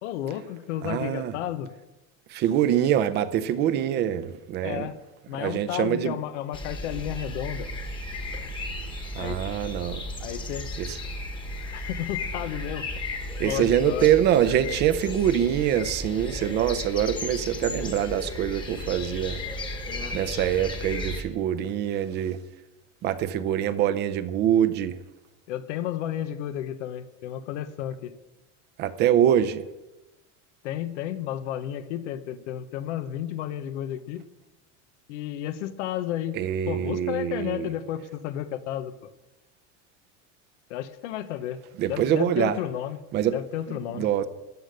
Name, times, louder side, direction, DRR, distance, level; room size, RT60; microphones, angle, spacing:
voice 1, 0.0-1.7 4.6-5.0 5.3-7.7 9.2-9.4 10.2-10.7 11.7-12.9 13.4-14.1 19.9-20.2 25.5-28.1 30.6-34.3 35.1-36.4 36.7-38.9 40.7-41.6 41.9-43.0 43.3-44.1, left 11 dB, 90° left, 1.1 m, -32 dB
voice 2, 0.8-1.3 2.3-4.9 5.4-6.2 9.1-10.0 10.8-11.0 13.4-19.4 20.1-22.4 23.0-25.0 28.8-29.6 36.3-37.7 41.8-42.6 43.1-43.4 43.7-44.3, right 10 dB, 30° right, 0.6 m, -24 dB
sound 1, 6.5-21.2, left 1 dB, 15° left, 1.3 m, -34 dB
13.5 x 9.9 x 6.6 m
cardioid pair, 175°, 35 cm